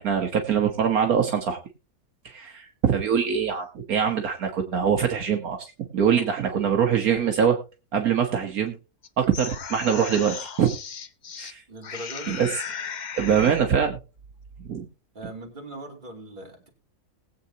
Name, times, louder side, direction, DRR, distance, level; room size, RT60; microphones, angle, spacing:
voice 1, 0.0-1.6 2.3-7.6 7.9-8.7 9.2-10.7 11.4-11.6 12.3-12.5 13.2-14.0 14.7-14.9, right 7 dB, 70° right, 3 dB, 1.6 m, -23 dB
sound 1, 9.0-11.5 11.8-13.7, left 6 dB, 45° left, 0.6 m, -36 dB
voice 2, 11.7-12.4 15.1-16.7, right 1 dB, 30° right, 1 dB, 3.1 m, -40 dB
20.5 x 8.1 x 2.8 m, 0.30 s
omnidirectional pair, 1.6 m